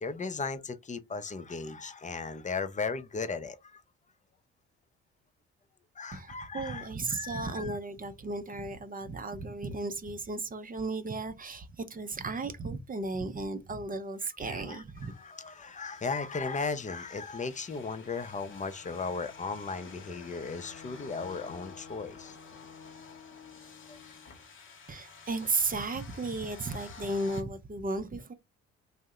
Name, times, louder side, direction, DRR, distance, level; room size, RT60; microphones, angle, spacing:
voice 1, 0.0-3.8 6.0-7.7 14.5-14.8 15.1-22.4 23.9-24.0, left 4 dB, 25° left, 0.6 m, -36 dB
voice 2, 6.1-15.1 24.9-28.3, right 3 dB, 30° right, 0.5 m, -35 dB
sound 1, 15.0-27.4, left 5 dB, 40° left, 0.9 m, -50 dB
2.7 x 2.1 x 3.5 m
hypercardioid pair, 60°, 31 cm